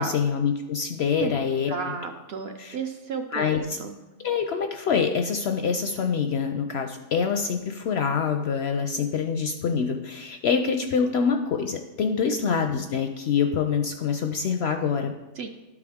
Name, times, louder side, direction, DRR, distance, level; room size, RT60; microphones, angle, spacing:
voice 1, 0.0-1.9 2.6-2.8 3.3-3.8 4.2-15.1, left 6 dB, 65° left, 5 dB, 0.7 m, -25 dB
voice 2, 1.7-4.0 12.3-12.6 15.4-15.5, right 5 dB, 60° right, 5 dB, 0.7 m, -33 dB
12.0 x 4.8 x 3.5 m, 1.1 s
omnidirectional pair, 1.5 m